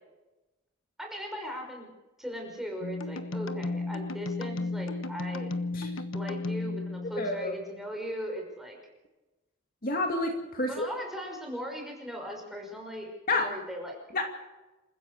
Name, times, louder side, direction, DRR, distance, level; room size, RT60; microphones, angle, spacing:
voice 1, 1.0-1.9 2.2-5.5 6.1-8.8 10.6-14.0, equal, ahead, 1 dB, 5.6 m, -38 dB
sound 1, 2.8-7.6, left 2 dB, 80° left, 1.3 m, -34 dB
voice 2, 7.2-7.5 9.8-10.9 13.3-13.5 14.1-14.2, left 2 dB, 45° left, 3 dB, 2.5 m, -29 dB
28.0 x 15.5 x 6.7 m, 1.1 s
head